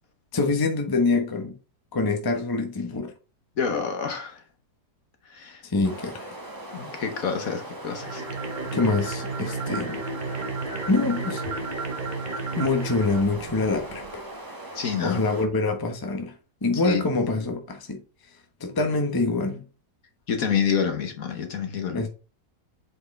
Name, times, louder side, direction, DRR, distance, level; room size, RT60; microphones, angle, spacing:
voice 1, 0.3-1.5 1.9-3.1 5.6-6.3 8.7-10.0 10.9-11.4 12.5-14.2 15.0-16.3 16.6-18.0 18.6-19.6 21.9-22.1, left 3 dB, 15° left, 0.8 m, -25 dB
voice 2, 3.6-4.4 5.3-5.6 6.7-8.3 14.7-15.2 16.7-17.0 20.3-22.1, left 7 dB, 60° left, 1.2 m, -28 dB
sound 1, 5.8-15.4, right 1 dB, 15° right, 0.9 m, -40 dB
sound 2, 7.9-14.2, right 3 dB, 35° right, 0.9 m, -33 dB
7.7 x 4.5 x 3.2 m
omnidirectional pair, 1.9 m